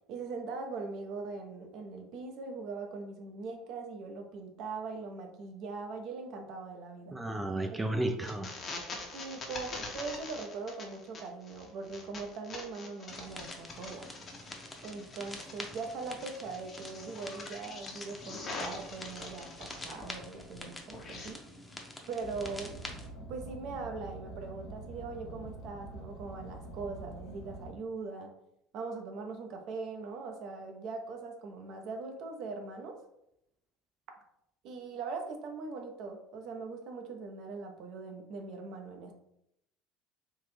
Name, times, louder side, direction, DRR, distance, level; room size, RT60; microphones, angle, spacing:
voice 1, 0.1-7.2 7.7-8.0 9.1-14.1 14.8-21.4 22.1-22.8 23.3-28.3 28.7-33.0 34.6-39.1, right 4 dB, 60° right, 4 dB, 0.7 m, -41 dB
voice 2, 7.1-8.5, right 1 dB, 15° right, 5 dB, 0.4 m, -33 dB
sound 1, 8.2-20.1 20.4-21.3, left 3 dB, 40° left, 0.9 m, -44 dB
sound 2, 13.1-23.1, left 1 dB, 10° left, 0.8 m, -47 dB
Car, 22.2-27.7, right 2 dB, 70° left, 1.0 m, -46 dB
3.6 x 2.7 x 3.2 m, 0.79 s
hypercardioid pair, 70°, 0 cm